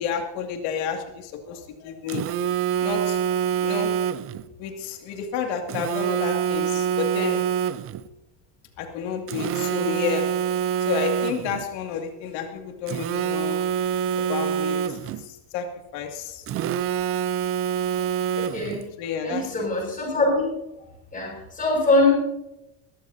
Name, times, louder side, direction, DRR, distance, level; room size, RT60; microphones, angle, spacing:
voice 1, 0.0-2.3 2.8-3.2 3.6-3.9 4.6-7.5 8.8-10.4 10.9-13.7 14.2-16.4 19.0-19.7, left 6 dB, 90° left, 4 dB, 2.5 m, -30 dB
Telephone, 2.1-4.4 5.7-8.1 9.3-11.6 12.9-15.3 16.5-18.8, right 9 dB, 35° right, 0.5 m, -26 dB
voice 2, 18.4-18.8 19.2-20.5 21.1-22.1, left 2 dB, 20° left, -4 dB, 6.6 m, -22 dB
22.0 x 14.0 x 2.8 m, 0.93 s
cardioid pair, 155°, 40 cm